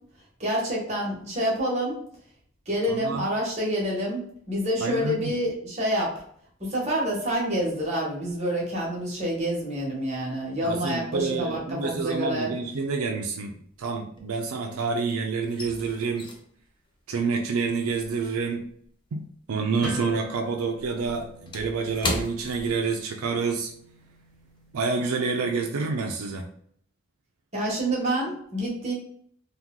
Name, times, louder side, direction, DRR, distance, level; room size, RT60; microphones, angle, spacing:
voice 1, 0.4-2.0 2.7-4.2 4.5-6.2 6.6-12.5 27.5-28.9, equal, 30° right, -3 dB, 1.1 m, -27 dB
voice 2, 2.9-3.3 4.8-5.3 10.6-16.3 17.1-18.6 19.1-23.7 24.7-26.5, right 4 dB, 80° right, 3 dB, 0.4 m, -28 dB
sound 1, 12.1-12.6 12.8-14.8 15.1-19.8 20.1-23.4 23.7-23.9 24.3-24.6, left 2 dB, 20° left, 0.4 m, -37 dB
sound 2, 19.8-25.2, left 1 dB, 5° left, 0.9 m, -43 dB
2.9 x 2.2 x 3.6 m, 0.62 s
head